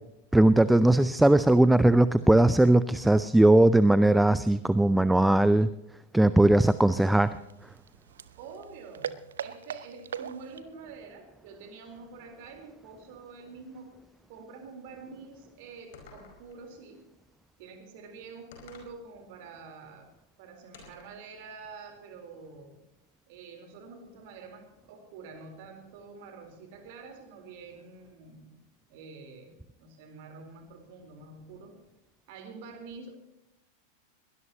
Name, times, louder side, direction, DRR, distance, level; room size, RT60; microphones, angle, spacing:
voice 1, 0.3-5.7 6.1-7.3, right 1 dB, 5° right, 15 dB, 0.5 m, -20 dB
sound 1, 6.7-10.8, right 8 dB, 65° right, 0.8 m, -41 dB
voice 2, 8.4-14.0 14.3-17.0 17.6-20.1 20.4-22.8 23.3-28.5 28.9-31.8 32.3-33.1, right 4 dB, 50° right, 5 dB, 4.0 m, -47 dB
sound 2, 15.9-16.6 18.5-19.0 20.7-21.2, left 5 dB, 55° left, 4.7 m, -51 dB
22.0 x 19.5 x 3.0 m, 0.90 s
figure-of-eight pair, 90°, 0 cm